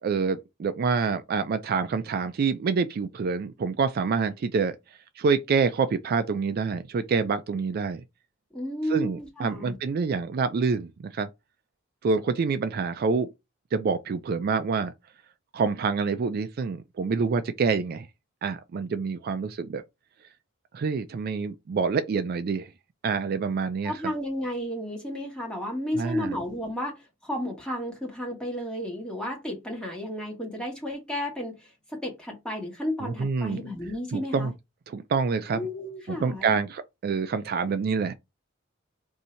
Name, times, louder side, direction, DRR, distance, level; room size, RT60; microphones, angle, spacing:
voice 1, 0.0-4.8 5.2-8.0 8.9-11.3 12.0-13.3 13.7-14.9 15.5-18.1 18.4-19.8 20.7-22.7 23.0-23.9 25.9-26.3 33.0-33.6 34.1-34.5 34.9-35.6 36.1-38.1, right 5 dB, 50° right, 0.3 m, -27 dB
voice 2, 8.5-9.8 23.8-34.5 35.5-36.6, left 1 dB, 5° left, 1.4 m, -33 dB
2.7 x 2.7 x 4.3 m
head